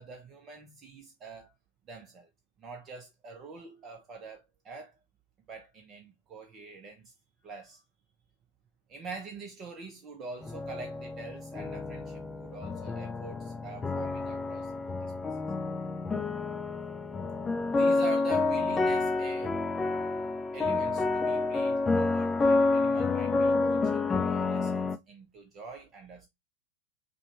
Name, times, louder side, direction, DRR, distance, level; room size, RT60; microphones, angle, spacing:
voice 1, 0.0-1.5 1.9-2.3 2.6-5.0 5.5-7.1 7.4-7.8 8.9-14.7 15.0-15.1 17.7-19.6 20.5-26.3, right 4 dB, 30° right, 0.7 m, -45 dB
sound 1, 10.4-25.0, left 3 dB, 15° left, 0.4 m, -29 dB
5.1 x 2.3 x 2.8 m
figure-of-eight pair, 90°, 0 cm